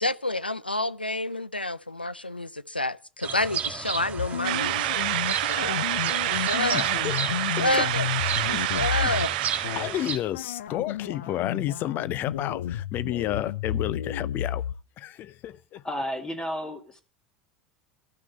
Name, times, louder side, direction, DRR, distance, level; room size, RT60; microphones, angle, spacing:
voice 1, 0.0-5.0 5.3-5.8 6.2-6.9 7.3-8.1 8.4-9.3, left 2 dB, 90° left, 0.6 m, -29 dB
sound 1, 3.2-10.2, right 7 dB, 30° right, 2.1 m, -34 dB
sound 2, 4.2-9.3 9.6-9.9 10.3-14.7, left 10 dB, 70° left, 0.9 m, -32 dB
sound 3, 4.4-10.2, right 16 dB, 60° right, 0.6 m, -28 dB
voice 2, 6.7-7.2 8.4-9.1 9.8-14.6 15.0-15.8, left 13 dB, 40° left, 0.6 m, -31 dB
voice 3, 15.8-17.0, equal, 15° left, 2.5 m, -32 dB
13.5 x 6.2 x 9.2 m
figure-of-eight pair, 75°, 5 cm